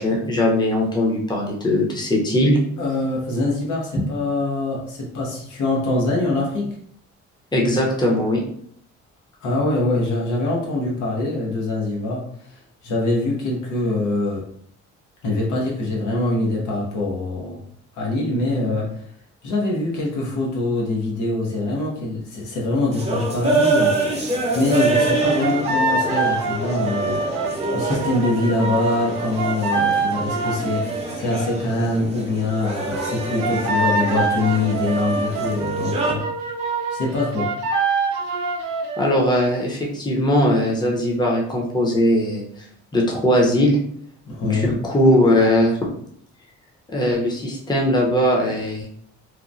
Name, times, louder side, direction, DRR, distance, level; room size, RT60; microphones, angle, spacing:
voice 1, 0.0-2.6 3.9-4.0 7.5-8.4 39.0-42.6 42.9-43.8 44.4-45.8 46.9-48.9, left 1 dB, 15° left, -2 dB, 0.7 m, -19 dB
voice 2, 2.8-6.8 9.4-12.2 12.5-14.4 15.2-17.6 17.9-18.9 19.4-24.0 24.5-27.2 27.7-36.3 36.9-37.5 44.2-44.8, left 2 dB, 80° left, -3 dB, 1.0 m, -24 dB
sound 1, 22.9-36.1, right 2 dB, 20° right, 0.7 m, -26 dB
sound 2, 24.9-31.1 32.9-39.1, right 3 dB, 90° right, 0.5 m, -25 dB
3.0 x 2.1 x 2.5 m, 0.64 s
cardioid pair, 90°, 30 cm